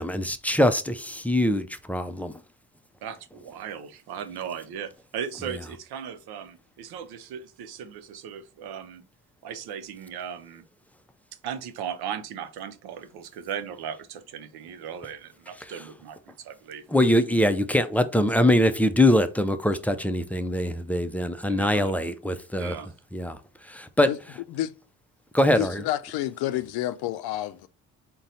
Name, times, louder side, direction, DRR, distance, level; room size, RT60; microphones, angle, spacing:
voice 1, 0.0-2.3 5.4-5.6 15.6-15.9 16.9-22.8 23.1-23.4 23.6-24.4 25.3-25.9, left 1 dB, 5° left, 0.5 m, -23 dB
voice 2, 3.0-9.0 9.4-10.6 11.4-16.8 21.5-21.9 22.6-22.9, right 8 dB, 70° right, 0.7 m, -37 dB
voice 3, 25.6-27.7, left 14 dB, 70° left, 0.5 m, -29 dB
4.0 x 2.3 x 3.8 m
supercardioid pair, 60°, 40 cm